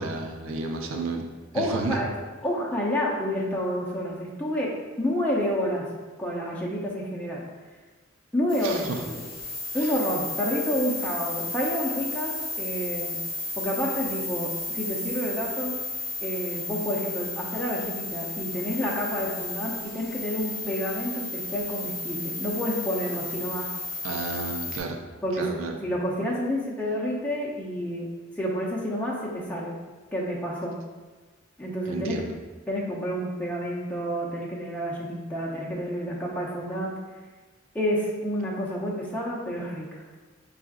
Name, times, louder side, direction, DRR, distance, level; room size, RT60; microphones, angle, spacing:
voice 1, 0.0-2.0 8.6-9.0 9.7-9.9 24.0-25.0 25.3-25.7 31.9-32.3, right 3 dB, 85° right, 3 dB, 0.5 m, -32 dB
voice 2, 1.5-2.1 2.4-5.9 6.2-7.4 8.3-9.2 9.7-13.2 13.6-15.8 16.2-23.7 25.2-25.5 25.8-28.1 28.4-29.7 30.1-30.8 31.6-32.3 32.7-36.9 37.7-40.0, equal, 10° left, -4 dB, 0.7 m, -29 dB
sound 1, 8.5-24.8, left 2 dB, 45° left, 1.0 m, -34 dB
4.8 x 3.6 x 2.4 m, 1.3 s
head